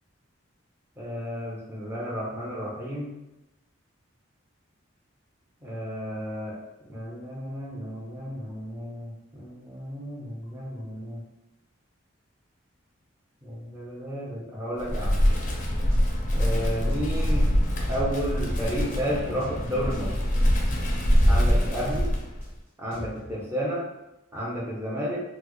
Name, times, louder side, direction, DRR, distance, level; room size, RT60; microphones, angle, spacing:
voice 1, 1.0-3.1 5.6-6.5 6.9-11.2 13.4-15.2 16.3-17.5 17.9-20.1 21.2-22.1 22.8-23.8 24.3-25.2, equal, 15° right, -6 dB, 0.7 m, -32 dB
Wind, 14.8-22.5, equal, 40° left, 0.5 m, -24 dB
sound 1, 15.4-15.6 15.9-16.1 16.4-16.6 16.9-18.6 18.9-19.0 19.4-19.6 19.9-20.1 20.4-20.6 20.9-22.4 22.9-23.3, equal, 30° right, 1.5 m, -38 dB
4.0 x 2.0 x 3.0 m, 0.95 s
head